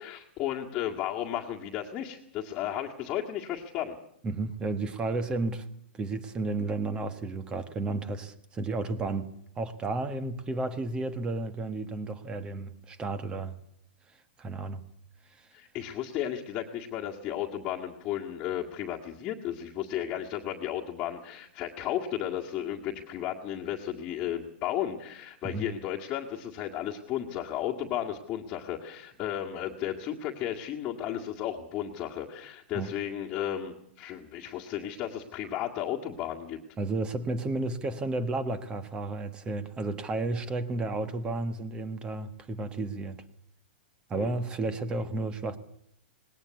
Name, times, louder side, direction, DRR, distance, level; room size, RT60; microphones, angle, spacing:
voice 1, 0.0-4.0 15.5-36.6 44.2-44.3, left 11 dB, 25° left, 1.9 m, -34 dB
voice 2, 4.2-5.7 5.9-13.6 14.4-14.8 15.4-15.5 25.4-25.7 32.7-32.9 36.8-43.2 44.1-45.6, right 2 dB, 15° right, 1.4 m, -32 dB
19.5 x 18.0 x 8.3 m
hypercardioid pair, 155°, 6 cm